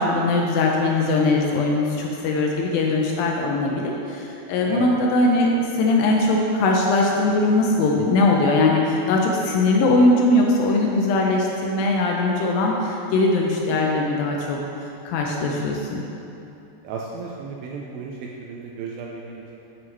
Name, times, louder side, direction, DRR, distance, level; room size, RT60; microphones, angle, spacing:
voice 1, 0.0-14.6 15.1-16.0, left 2 dB, 80° left, 0 dB, 2.1 m, -20 dB
voice 2, 15.3-15.8 16.8-19.5, right 5 dB, 80° right, -2 dB, 2.1 m, -34 dB
9.4 x 7.8 x 3.1 m, 2.9 s
omnidirectional pair, 4.7 m